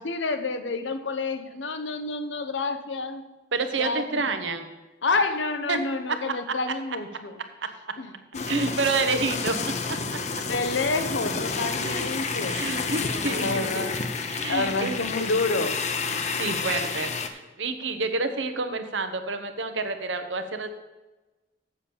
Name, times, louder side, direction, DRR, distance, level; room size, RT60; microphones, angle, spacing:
voice 1, 0.0-3.2 3.8-4.2 5.0-7.4 8.0-8.7 10.4-13.9 14.5-15.8, left 3 dB, 85° left, 9 dB, 0.9 m, -29 dB
voice 2, 3.5-4.7 5.7-5.8 6.1-6.6 7.6-7.7 8.5-9.6 9.9-10.2 11.8-12.1 12.5-13.9 14.3-15.0 16.4-20.7, right 3 dB, 85° right, 8 dB, 1.0 m, -29 dB
sound 1, 8.3-17.3, left 4 dB, 40° left, 0.7 m, -30 dB
7.2 x 7.1 x 6.9 m, 1.1 s
head